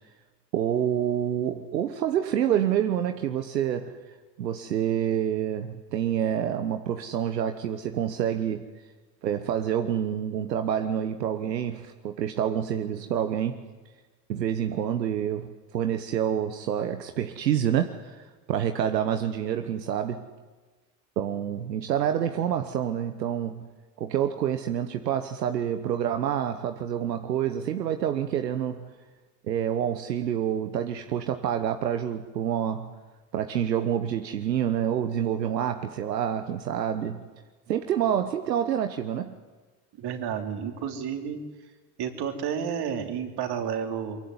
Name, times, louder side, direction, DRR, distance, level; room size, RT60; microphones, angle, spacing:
voice 1, 0.5-4.0 4.4-8.6 9.2-13.6 14.3-20.3 21.2-23.7 24.0-28.9 29.4-32.9 33.3-37.2 37.7-39.4, right 9 dB, 85° right, 8 dB, 1.2 m, -27 dB
voice 2, 40.0-41.4 42.0-44.2, right 8 dB, 50° right, 4 dB, 3.8 m, -31 dB
23.5 x 23.0 x 9.7 m, 1.3 s
hypercardioid pair, 75°, 48 cm